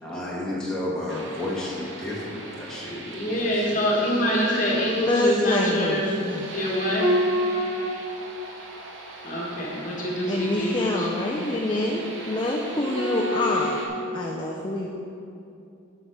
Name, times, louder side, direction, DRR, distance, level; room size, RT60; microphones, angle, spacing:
voice 1, 0.0-3.8 4.5-4.6, left 1 dB, 5° left, -7 dB, 1.4 m, -32 dB
sound 1, 1.1-13.9, equal, 65° right, 1.0 m, -32 dB
voice 2, 3.1-6.2 6.5-7.1 9.2-11.1, equal, 35° left, -3 dB, 1.4 m, -25 dB
voice 3, 5.1-6.5 10.3-13.8 14.1-14.9, left 2 dB, 20° left, -2 dB, 0.5 m, -26 dB
7.4 x 6.7 x 4.8 m, 2.6 s
head